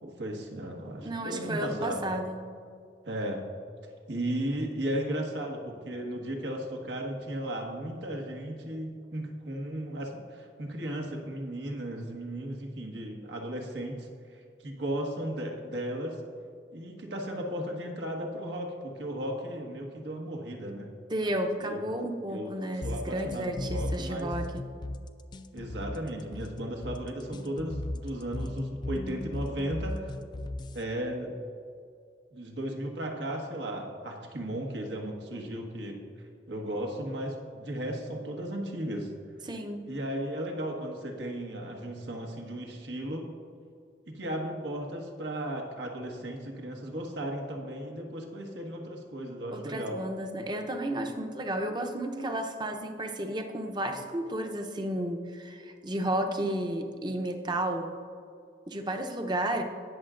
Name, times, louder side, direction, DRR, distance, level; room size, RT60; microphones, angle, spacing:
voice 1, 0.0-2.1 3.0-3.4 4.1-16.2 16.7-20.9 21.6-21.8 22.3-22.5 22.8-24.3 25.5-30.1 30.7-31.3 32.3-36.0 36.5-39.1 39.8-43.3 44.1-50.0, right 1 dB, 85° right, 1 dB, 1.4 m, -35 dB
voice 2, 1.0-2.4 21.1-24.6 39.5-39.9 49.5-58.0 58.7-59.6, right 1 dB, 25° right, 5 dB, 0.7 m, -32 dB
sound 1, 22.8-30.8, left 1 dB, 25° left, 0.4 m, -36 dB
19.0 x 6.8 x 2.5 m, 2.3 s
head